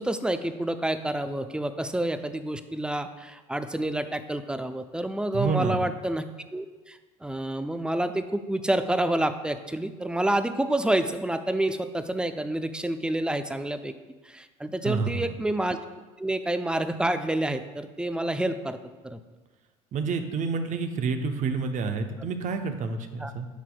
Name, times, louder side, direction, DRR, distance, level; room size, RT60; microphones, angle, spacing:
voice 1, 0.0-6.2 6.5-13.9 14.2-15.8 16.2-18.8 19.0-19.2 23.2-23.3, right 1 dB, 5° right, 10 dB, 0.5 m, -28 dB
voice 2, 5.3-5.8 14.8-15.4 19.9-23.5, right 4 dB, 45° right, 7 dB, 0.8 m, -29 dB
11.0 x 5.9 x 2.3 m, 1.3 s
hypercardioid pair, 70°, 18 cm